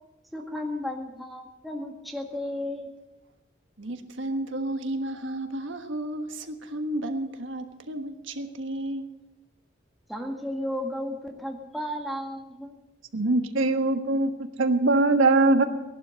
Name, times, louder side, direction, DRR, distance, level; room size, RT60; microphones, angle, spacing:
voice 1, 0.3-2.9 10.1-12.7, left 1 dB, ahead, 0 dB, 1.8 m, -34 dB
voice 2, 3.8-9.1, right 1 dB, 65° right, 6 dB, 1.4 m, -33 dB
voice 3, 13.1-14.3 14.6-15.6, right 2 dB, 85° right, 5 dB, 1.5 m, -21 dB
18.0 x 11.5 x 6.4 m, 1.0 s
head